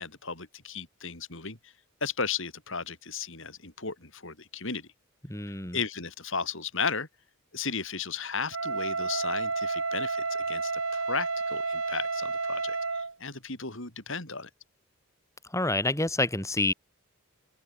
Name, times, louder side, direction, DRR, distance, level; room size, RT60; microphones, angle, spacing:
voice 1, 0.0-1.6 2.0-4.9 5.7-7.1 7.5-14.5, left 5 dB, 60° left, 5.1 m, -35 dB
voice 2, 5.3-5.8 15.5-16.7, left 2 dB, 15° left, 3.9 m, -28 dB
Wind instrument woodwind instrument, 8.5-13.1, right 3 dB, 65° right, 6.9 m, -30 dB
open air
head